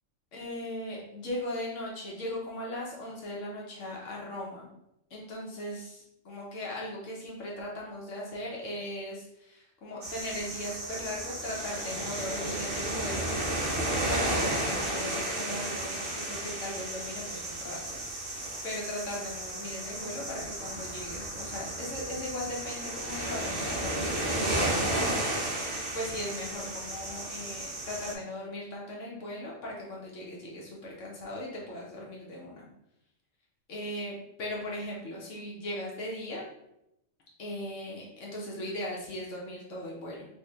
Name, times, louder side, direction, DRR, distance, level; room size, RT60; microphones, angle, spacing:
voice 1, 0.3-4.7 5.1-13.3 14.0-32.7 33.7-36.4 37.4-40.3, left 1 dB, 75° left, -3 dB, 1.1 m, -38 dB
sound 1, 10.0-28.1, right 1 dB, 50° right, 0.9 m, -33 dB
3.1 x 2.7 x 3.3 m, 0.84 s
omnidirectional pair, 1.3 m